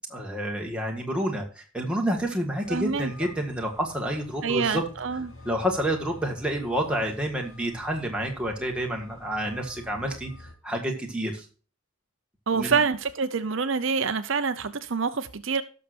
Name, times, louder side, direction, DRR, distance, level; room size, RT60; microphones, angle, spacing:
voice 1, 0.1-4.8 5.5-11.5 12.5-12.8, equal, 5° right, 1.7 m, -29 dB
sound 1, 2.6-10.5, left 1 dB, 70° left, 2.4 m, -47 dB
voice 2, 2.7-3.1 4.4-5.3 12.5-15.6, right 5 dB, 60° right, 0.7 m, -26 dB
17.5 x 6.6 x 2.6 m
head